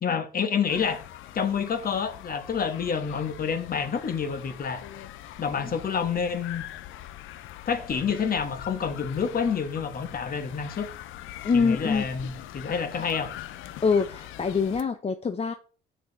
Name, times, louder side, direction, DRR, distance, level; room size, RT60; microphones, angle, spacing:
voice 1, 0.0-1.0 1.3-4.8 5.4-6.6 7.7-10.9 11.5-13.3, left 6 dB, 45° left, 1.2 m, -28 dB
sound 1, 0.7-14.8, left 13 dB, 90° left, 0.5 m, -43 dB
voice 2, 11.4-12.0 13.8-15.5, left 5 dB, 30° left, 0.6 m, -24 dB
6.4 x 6.2 x 4.0 m
cardioid pair, 90°, 20 cm